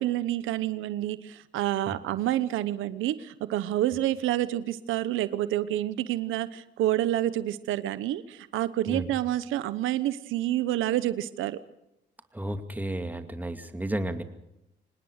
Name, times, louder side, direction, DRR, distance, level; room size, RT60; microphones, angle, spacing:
voice 1, 0.0-11.6, right 13 dB, 90° right, 15 dB, 0.9 m, -28 dB
voice 2, 12.3-14.2, right 1 dB, 10° right, 8 dB, 2.4 m, -32 dB
25.5 x 19.5 x 6.5 m, 0.85 s
cardioid pair, 90°, 20 cm